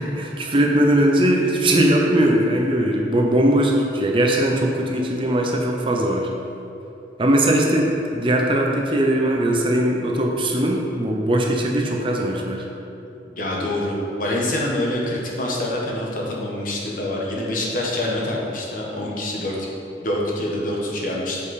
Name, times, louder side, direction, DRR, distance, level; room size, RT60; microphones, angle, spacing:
voice 1, 0.0-6.3 7.2-12.6, right 1 dB, 30° right, 0 dB, 0.6 m, -20 dB
voice 2, 13.4-19.6 20.0-21.4, left 1 dB, 50° left, -3 dB, 1.1 m, -25 dB
7.1 x 5.3 x 4.1 m, 2.8 s
head